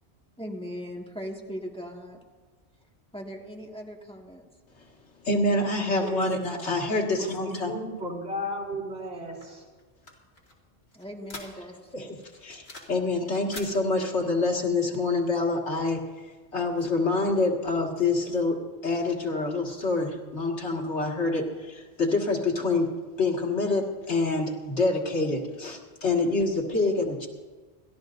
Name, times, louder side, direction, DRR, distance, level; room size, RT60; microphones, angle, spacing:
voice 1, 0.4-2.2 3.1-4.5 10.9-12.2, equal, 5° left, -1 dB, 1.8 m, -39 dB
voice 2, 5.2-7.7 11.9-12.1 12.4-16.0 16.5-22.9 23.2-27.3, left 3 dB, 90° left, 0 dB, 2.3 m, -26 dB
voice 3, 6.0-6.4 7.2-9.6, equal, 80° right, -2 dB, 4.2 m, -34 dB
sound 1, 9.4-11.9 12.2-13.0 13.3-13.7, left 2 dB, 65° left, 2.8 m, -44 dB
29.5 x 13.0 x 2.6 m, 1.3 s
omnidirectional pair, 1.1 m